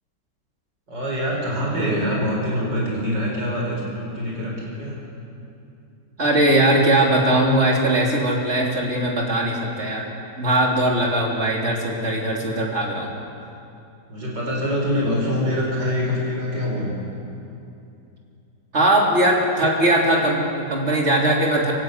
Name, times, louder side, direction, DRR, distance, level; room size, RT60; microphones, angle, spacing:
voice 1, 0.9-5.0 14.1-16.9, equal, 85° right, -3 dB, 5.5 m, -24 dB
voice 2, 6.2-10.0 10.4-13.1 18.7-21.7, right 1 dB, 40° right, -2 dB, 3.9 m, -20 dB
24.5 x 19.0 x 8.3 m, 2.7 s
omnidirectional pair, 1.9 m